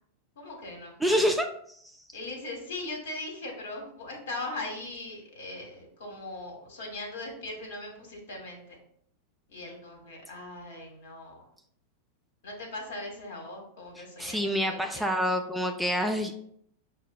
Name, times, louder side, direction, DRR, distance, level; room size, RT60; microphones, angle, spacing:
voice 1, 0.4-1.2 2.1-8.8 9.5-11.5 12.4-15.1, left 2 dB, 70° left, 2 dB, 1.2 m, -40 dB
voice 2, 1.0-1.5 14.0-16.3, equal, 5° right, 4 dB, 0.4 m, -27 dB
6.2 x 2.1 x 2.2 m, 0.67 s
hypercardioid pair, 95°, 0 cm